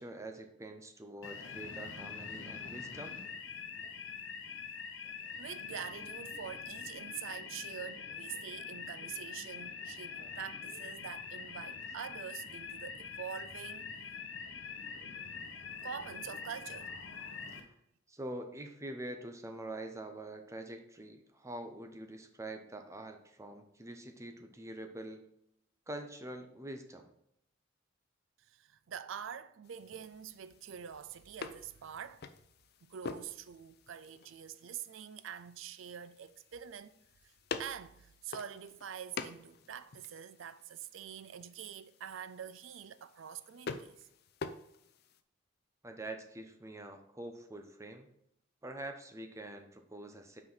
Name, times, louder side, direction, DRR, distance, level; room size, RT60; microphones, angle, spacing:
voice 1, 0.0-3.2 17.5-17.7 18.1-25.2 25.9-27.1 45.8-48.1 48.6-50.4, right 1 dB, 15° right, 0.7 m, -45 dB
sound 1, 1.2-17.6, left 5 dB, 70° left, 1.0 m, -44 dB
voice 2, 5.4-13.9 15.8-16.9 17.2-17.3 28.5-32.3 32.8-37.0 37.6-44.1, right 8 dB, 80° right, 0.4 m, -45 dB
sound 2, 29.6-45.2, left 4 dB, 55° left, 0.5 m, -48 dB
5.9 x 4.7 x 5.6 m
head